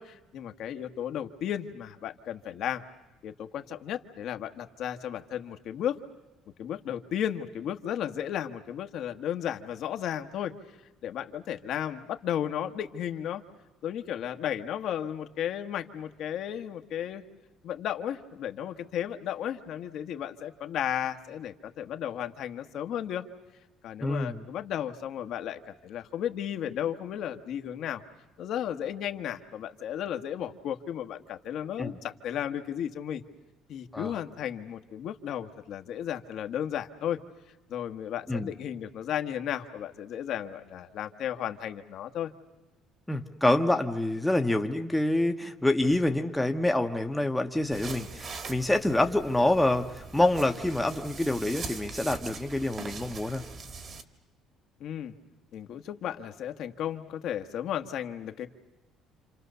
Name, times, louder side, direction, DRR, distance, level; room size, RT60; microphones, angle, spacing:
voice 1, 0.0-2.8 3.2-6.0 6.6-10.5 11.0-13.4 13.8-17.2 17.6-23.3 23.8-28.0 28.4-33.2 33.7-37.2 37.7-42.3 54.8-55.1 55.5-58.5, left 10 dB, 55° left, 7 dB, 1.4 m, -34 dB
voice 2, 24.0-24.4 31.8-31.9 33.9-34.1 38.3-38.5 43.1-53.4, left 1 dB, 5° left, 4 dB, 1.1 m, -26 dB
sound 1, 47.7-54.0, right 4 dB, 35° right, 1.7 m, -42 dB
29.0 x 27.5 x 6.8 m, 1.1 s
cardioid pair, 160°, 0 cm